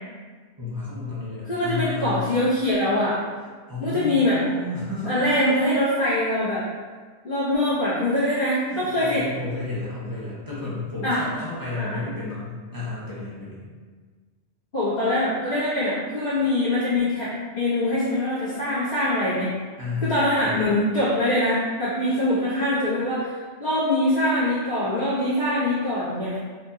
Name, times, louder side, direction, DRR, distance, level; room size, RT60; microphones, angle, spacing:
voice 1, 0.6-2.3 3.7-5.2 8.7-13.6 19.8-20.6, left 3 dB, 20° right, -9 dB, 0.9 m, -32 dB
voice 2, 1.5-3.2 3.8-4.4 5.0-6.7 7.2-9.2 11.0-11.2 11.8-12.0 14.7-19.5 20.0-23.3 23.6-26.4, left 1 dB, 60° left, -17 dB, 1.7 m, -23 dB
4.5 x 2.6 x 2.6 m, 1.5 s
omnidirectional pair, 1.2 m